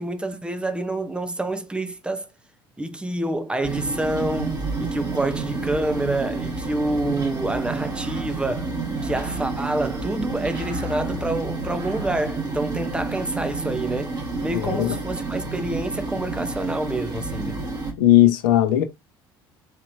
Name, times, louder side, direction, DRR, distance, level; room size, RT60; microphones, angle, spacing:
voice 1, 0.0-2.3 2.8-8.7 9.0-17.6, right 2 dB, 10° right, 0.7 m, -27 dB
sound 1, 3.6-17.9, right 3 dB, 30° right, 1.4 m, -30 dB
sound 2, 7.3-12.6, right 3 dB, 75° right, 1.2 m, -42 dB
voice 2, 14.5-14.9 18.0-18.8, left 13 dB, 70° left, 0.7 m, -17 dB
4.3 x 2.9 x 2.7 m
figure-of-eight pair, 60°, 12 cm